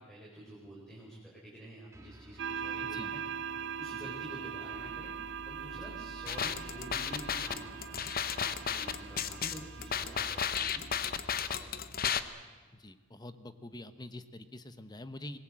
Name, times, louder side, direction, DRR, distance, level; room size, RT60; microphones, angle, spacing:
voice 1, 0.0-3.2 3.8-8.1 8.4-10.9 11.3-12.0, right 1 dB, ahead, -6 dB, 5.1 m, -49 dB
sound 1, 1.9-12.2, equal, 15° right, 1.9 m, -52 dB
sound 2, 2.4-10.6, right 7 dB, 60° right, 0.7 m, -41 dB
sound 3, 6.3-12.2, left 8 dB, 45° left, 1.0 m, -33 dB
voice 2, 12.7-15.4, left 1 dB, 20° left, 11 dB, 1.0 m, -46 dB
25.5 x 20.0 x 7.7 m, 1.4 s
head